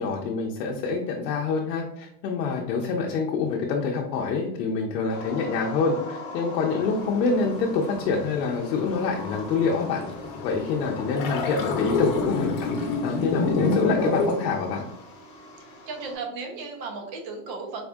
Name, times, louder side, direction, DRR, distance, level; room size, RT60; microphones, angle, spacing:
voice 1, 0.0-10.0 10.4-14.8, left 4 dB, 90° left, 0 dB, 0.7 m, -26 dB
sound 1, 5.1-16.1, left 2 dB, 30° left, 1.1 m, -42 dB
sound 2, 6.8-14.5, left 3 dB, 55° left, 0.8 m, -29 dB
voice 2, 15.6-17.9, right 4 dB, 45° right, 2 dB, 0.8 m, -35 dB
4.1 x 2.5 x 2.3 m, 0.80 s
supercardioid pair, 145°, 48 cm